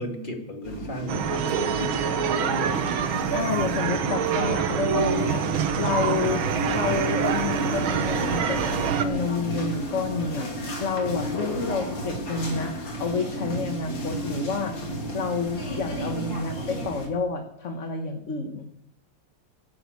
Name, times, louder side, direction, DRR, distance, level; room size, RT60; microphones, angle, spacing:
voice 1, 0.0-2.8, left 1 dB, 25° left, 3 dB, 2.6 m, -34 dB
sound 1, 0.6-17.1, right 1 dB, 60° left, 3.5 m, -32 dB
sound 2, 1.1-9.0, right 8 dB, 75° right, 1.8 m, -26 dB
voice 2, 3.3-6.4 6.7-10.5 10.8-12.7 13.0-14.8 15.1-18.6, left 5 dB, 40° left, 5 dB, 1.4 m, -29 dB
13.0 x 10.5 x 8.5 m, 0.76 s
omnidirectional pair, 2.3 m